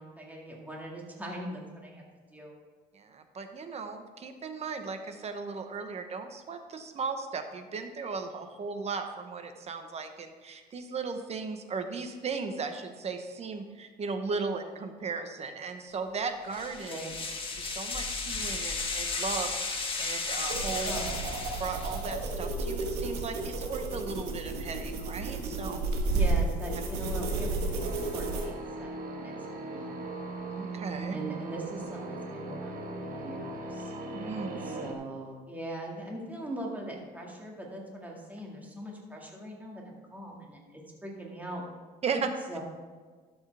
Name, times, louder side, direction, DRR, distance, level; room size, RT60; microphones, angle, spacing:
voice 1, 0.0-2.0 2.3-2.5 16.8-17.1 20.8-21.2 26.1-29.9 31.1-33.9 34.6-41.6 42.5-42.6, right 1 dB, 10° right, -2 dB, 2.0 m, -41 dB
voice 2, 2.9-17.0 17.6-20.9 21.6-25.8 30.5-31.2 34.1-34.6 42.0-42.3, right 4 dB, 40° right, 7 dB, 1.0 m, -36 dB
sound 1, 16.5-22.1, left 4 dB, 30° left, 1.5 m, -34 dB
sound 2, 20.5-28.5, right 3 dB, 80° right, 1.5 m, -32 dB
sound 3, 27.8-34.9, right 2 dB, 55° right, 1.3 m, -39 dB
12.0 x 7.2 x 3.4 m, 1.4 s
cardioid pair, 110°, 17 cm